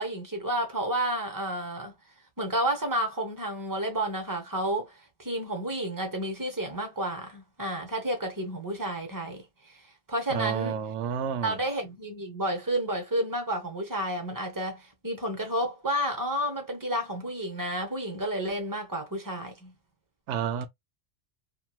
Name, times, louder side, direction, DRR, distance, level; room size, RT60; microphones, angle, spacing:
voice 1, 0.0-1.9 2.4-9.4 10.1-10.8 11.4-19.7, right 1 dB, 20° right, 0.8 m, -31 dB
voice 2, 10.3-11.6 20.3-20.7, right 8 dB, 75° right, 0.9 m, -30 dB
3.0 x 2.5 x 2.3 m
omnidirectional pair, 1.3 m